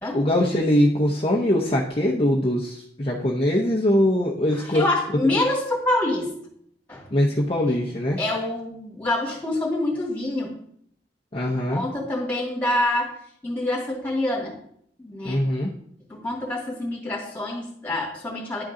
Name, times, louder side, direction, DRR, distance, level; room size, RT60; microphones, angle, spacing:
voice 1, 0.1-4.8 7.1-8.2 11.3-11.8 15.2-15.7, left 1 dB, 30° left, -2 dB, 0.7 m, -22 dB
voice 2, 4.5-6.4 6.9-7.1 7.7-7.8 8.2-10.5 11.5-13.1 13.4-14.5 15.0-15.4 16.1-18.6, left 1 dB, 10° left, -4 dB, 2.3 m, -26 dB
10.5 x 3.8 x 3.8 m, 0.68 s
head